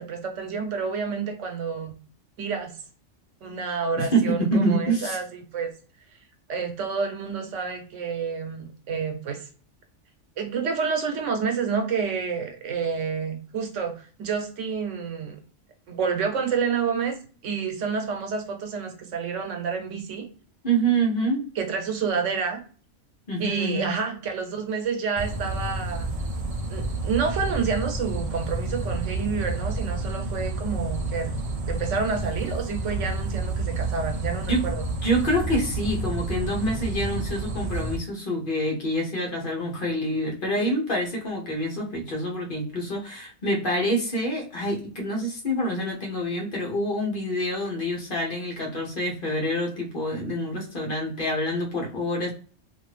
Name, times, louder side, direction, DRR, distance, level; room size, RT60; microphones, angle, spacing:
voice 1, 0.0-1.9 2.4-2.7 3.4-5.3 5.5-5.7 6.5-9.5 10.4-15.4 15.9-17.2 17.4-20.3 21.6-22.6 23.4-26.1 26.7-31.3 31.7-34.8, right 5 dB, 80° right, 5 dB, 1.1 m, -29 dB
voice 2, 4.0-5.2 20.6-21.4 23.3-24.0 34.5-34.6 35.0-52.3, right 1 dB, 50° left, -1 dB, 1.0 m, -26 dB
sound 1, 25.2-38.0, right 2 dB, 45° right, 0.5 m, -30 dB
2.5 x 2.5 x 3.2 m, 0.39 s
omnidirectional pair, 1.2 m